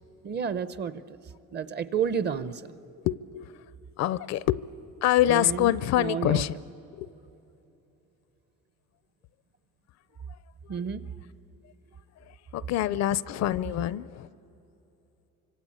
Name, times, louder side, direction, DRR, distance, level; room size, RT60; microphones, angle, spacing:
voice 1, 0.2-1.2 1.5-2.7 5.3-6.5 10.7-11.0, right 7 dB, 30° right, 14 dB, 0.7 m, -31 dB
voice 2, 3.0-3.5 4.0-4.6 5.0-6.5 7.0-7.1 12.5-14.3, left 13 dB, 55° left, 19 dB, 0.5 m, -25 dB
27.0 x 25.0 x 8.7 m, 3.0 s
cardioid pair, 160°, 32 cm